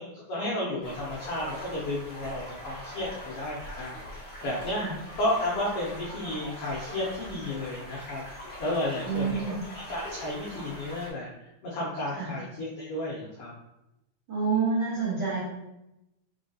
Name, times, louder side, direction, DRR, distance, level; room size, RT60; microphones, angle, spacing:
voice 1, 0.3-4.8 5.2-8.2 8.6-9.4 9.7-11.3 11.6-13.5, left 1 dB, 80° left, -5 dB, 1.3 m, -32 dB
sound 1, 0.8-11.1, left 1 dB, 40° left, 0.7 m, -42 dB
voice 2, 9.0-9.6 12.1-12.3 14.3-15.4, right 5 dB, 50° right, -10 dB, 1.6 m, -28 dB
4.2 x 3.7 x 2.7 m, 0.92 s
omnidirectional pair, 3.5 m